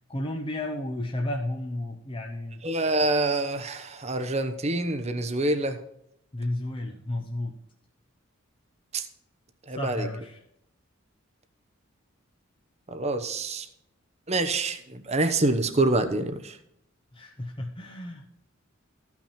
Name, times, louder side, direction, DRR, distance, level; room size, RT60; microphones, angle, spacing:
voice 1, 0.1-2.6 6.3-7.6 9.7-10.4 17.1-18.3, left 1 dB, 25° left, 0 dB, 0.9 m, -32 dB
voice 2, 2.6-5.8 8.9-9.0 9.7-10.1 12.9-13.7 14.3-16.6, right 2 dB, 30° right, 7 dB, 1.0 m, -26 dB
14.5 x 6.0 x 4.3 m, 0.76 s
head